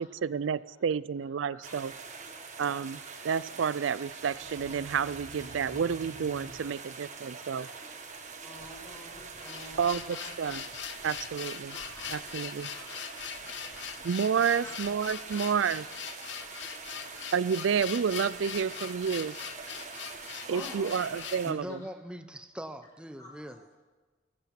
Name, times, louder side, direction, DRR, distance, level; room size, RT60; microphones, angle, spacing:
voice 1, 0.0-1.9 2.6-7.7 9.8-10.0 10.4-10.6 11.0-11.8 12.1-12.7 14.0-15.8 17.3-19.4 20.5-21.8, right 7 dB, 75° right, 19 dB, 0.4 m, -30 dB
voice 2, 1.4-1.8 6.3-8.0 8.4-10.8 11.7-12.2 12.7-13.0 14.4-15.0 15.3-15.5 15.8-15.9 19.3-19.5 20.4-21.3 21.7-21.9 23.2-23.6, left 1 dB, 15° left, -3 dB, 5.8 m, -50 dB
sound 1, 1.6-21.5, right 4 dB, 40° right, 1.6 m, -44 dB
sound 2, 4.3-7.1, equal, 35° left, 2.2 m, -50 dB
sound 3, 9.2-21.5, left 9 dB, 65° left, 0.8 m, -42 dB
voice 3, 21.4-23.7, equal, 5° right, 10 dB, 0.7 m, -41 dB
25.5 x 8.7 x 5.9 m, 1.3 s
head